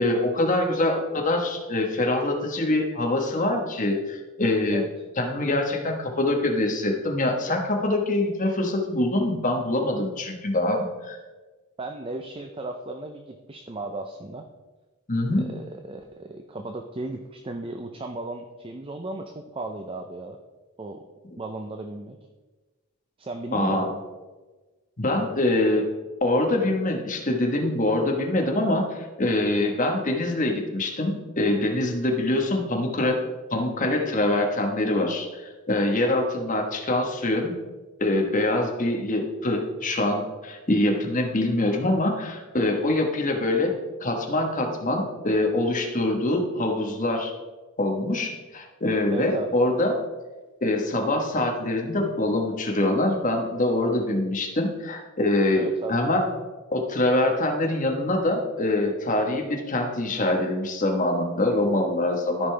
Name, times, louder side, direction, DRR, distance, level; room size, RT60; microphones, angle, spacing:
voice 1, 0.0-4.8 5.2-11.2 15.1-15.5 23.5-23.9 25.0-25.8 26.2-33.2 33.5-37.5 38.0-43.7 44.0-47.3 47.8-50.0 50.6-56.3 56.7-62.5, left 1 dB, 35° left, 2 dB, 1.2 m, -24 dB
voice 2, 11.8-14.5 15.4-20.4 20.8-21.0 21.4-22.2 23.2-24.0 49.1-49.5 55.6-56.0, right 2 dB, 25° right, 5 dB, 0.5 m, -35 dB
13.5 x 5.3 x 3.3 m, 1.2 s
head